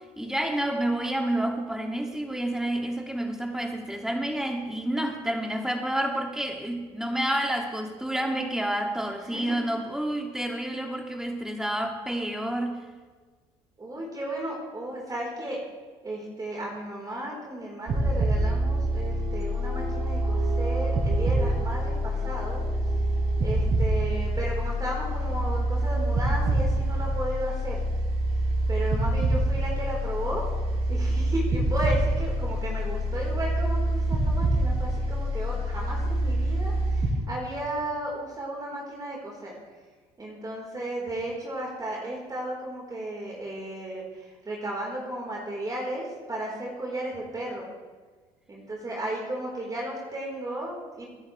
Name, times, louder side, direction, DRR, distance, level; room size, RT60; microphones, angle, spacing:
voice 1, 0.0-12.8, right 1 dB, 5° right, 3 dB, 2.4 m, -29 dB
voice 2, 13.8-15.6 16.0-22.6 23.4-27.8 28.7-30.4 30.9-39.5 40.2-47.7 48.5-51.1, right 1 dB, 25° right, -3 dB, 4.3 m, -34 dB
sound 1, 17.9-37.1, right 1 dB, 50° right, 4.7 m, -26 dB
24.5 x 11.0 x 3.4 m, 1.4 s
hypercardioid pair, 65°, 14 cm